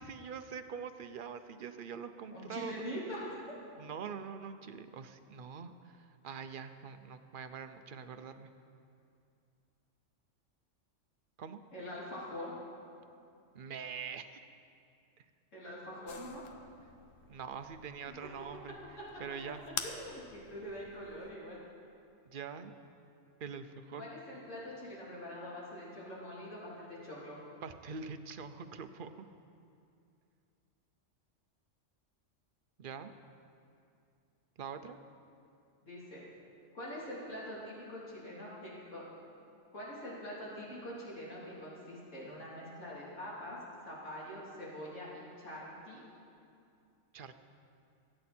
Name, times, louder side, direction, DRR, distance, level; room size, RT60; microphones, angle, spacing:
voice 1, 0.0-2.9 3.8-8.5 11.4-11.6 13.5-14.4 17.3-18.8 19.2-19.6 22.3-22.7 23.4-24.1 27.6-29.2 32.8-33.1 34.6-35.0 47.1-47.4, right 6 dB, 50° right, 9 dB, 0.7 m, -44 dB
voice 2, 2.3-3.4 11.7-12.5 15.5-16.4 18.2-18.3 19.8-21.6 24.0-27.4 35.8-36.2 36.7-39.0 39.7-43.6 43.9-45.6 45.9-46.0, equal, 70° left, -7 dB, 3.8 m, -44 dB
sound 1, 16.1-21.3, left 7 dB, 90° left, 1.2 m, -47 dB
23.5 x 8.8 x 4.4 m, 2.5 s
omnidirectional pair, 1.3 m